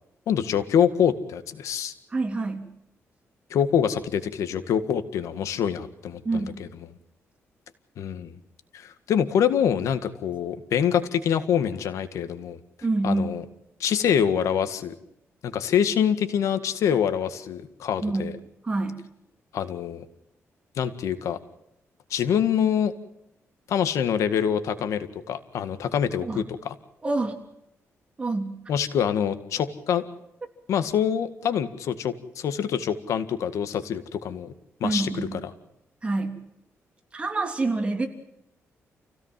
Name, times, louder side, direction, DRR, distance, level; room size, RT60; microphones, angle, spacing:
voice 1, 0.3-1.9 3.5-6.7 8.0-8.3 8.7-12.6 13.0-13.4 13.8-14.9 15.4-18.3 19.5-20.0 20.8-21.4 22.1-22.9 23.7-26.7 28.7-30.1 30.7-34.5 34.8-35.3, left 8 dB, 85° left, 11 dB, 1.9 m, -25 dB
voice 2, 2.1-2.7 6.2-6.6 12.8-13.3 18.0-19.1 26.2-26.4 27.0-27.4 28.2-28.6 34.8-35.4 36.0-36.5 37.1-38.1, right 2 dB, 25° right, 4 dB, 3.1 m, -27 dB
29.0 x 17.0 x 7.6 m, 0.81 s
cardioid pair, 140°, 5 cm